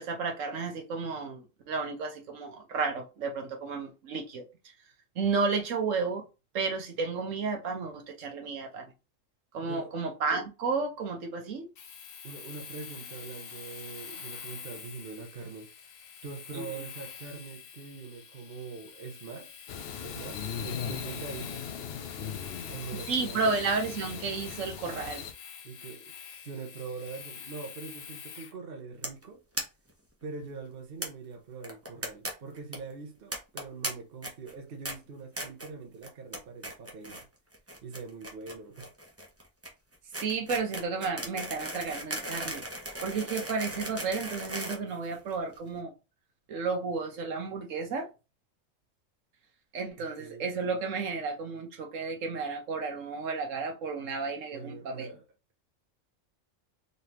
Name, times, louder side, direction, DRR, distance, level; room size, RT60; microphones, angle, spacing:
voice 1, 0.0-4.4 5.2-6.2 6.5-8.9 9.5-11.7 16.5-16.6 23.1-25.2 40.2-42.6 43.0-45.9 46.5-48.1 49.7-55.1, right 4 dB, 70° right, 1.2 m, -32 dB
voice 2, 9.6-9.9 12.2-15.7 16.2-19.6 20.0-21.7 22.7-23.5 25.6-29.4 30.2-37.2 37.8-38.9 50.0-50.5 54.5-55.2, right 4 dB, 50° right, 0.9 m, -43 dB
Domestic sounds home sounds, 11.8-28.6, left 7 dB, 80° left, 1.2 m, -46 dB
sound 1, 19.7-25.3, left 7 dB, 60° left, 0.7 m, -39 dB
sound 2, 29.0-29.2 29.5-29.6 29.9-30.0 30.2-30.3 31.0-31.1 31.6-32.3 32.6-32.8 33.3-33.9 34.2-34.5 34.8-34.9 35.4-35.7 36.0-36.4 36.6-37.2 37.5-45.6, right 1 dB, 15° right, 0.8 m, -37 dB
4.0 x 3.3 x 2.9 m
omnidirectional pair, 1.4 m